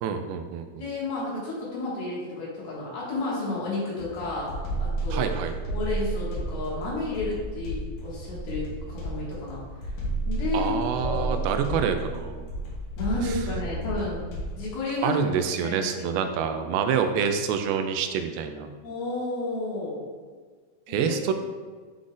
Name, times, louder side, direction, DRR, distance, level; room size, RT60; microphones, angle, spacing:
voice 1, 0.0-0.9 5.1-5.5 10.5-12.5 13.2-13.4 15.0-18.7 20.9-21.3, right 7 dB, 85° right, 7 dB, 2.4 m, -27 dB
voice 2, 0.8-5.4 5.7-9.9 10.3-11.4 13.0-14.3 14.6-15.2 15.6-16.3 18.8-20.0 20.9-21.3, left 2 dB, 85° left, -7 dB, 3.7 m, -32 dB
sound 1, 4.0-14.7, right 2 dB, 60° left, 2.1 m, -32 dB
10.0 x 3.8 x 2.5 m, 1.5 s
omnidirectional pair, 4.3 m